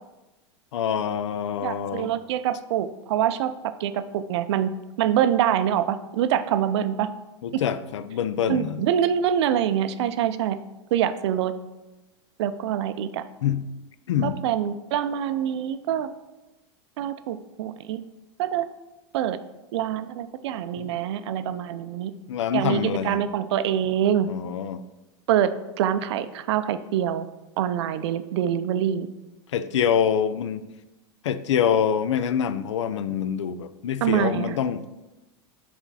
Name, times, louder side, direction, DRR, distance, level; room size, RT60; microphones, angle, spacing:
voice 1, 0.7-2.1 7.4-8.9 13.4-13.6 14.1-14.4 20.8-20.9 22.3-23.3 24.3-24.8 29.5-30.6 31.2-34.9, left 8 dB, 80° left, 13 dB, 0.4 m, -25 dB
voice 2, 1.6-3.5 3.8-4.7 5.0-7.1 8.5-10.6 10.9-11.5 12.4-13.2 14.2-16.1 17.0-18.0 18.4-18.7 19.1-19.4 19.7-22.1 22.5-24.3 25.3-25.5 25.8-27.3 27.6-29.1 34.0-34.6, right 10 dB, 70° right, 12 dB, 0.4 m, -25 dB
5.8 x 4.3 x 4.1 m, 1.0 s
hypercardioid pair, 100°, 15 cm